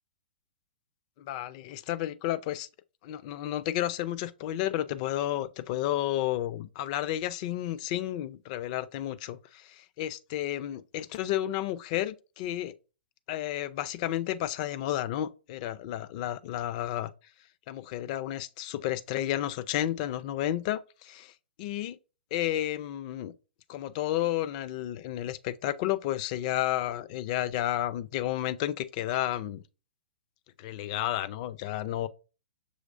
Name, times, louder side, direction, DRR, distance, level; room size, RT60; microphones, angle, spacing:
voice 1, 1.2-2.7 3.0-12.7 13.3-17.1 17.7-21.3 21.6-22.0 22.3-23.3 23.7-29.6 30.6-32.1, left 13 dB, 45° left, 0.4 m, -32 dB
6.3 x 3.1 x 2.5 m
hypercardioid pair, 120°, 6 cm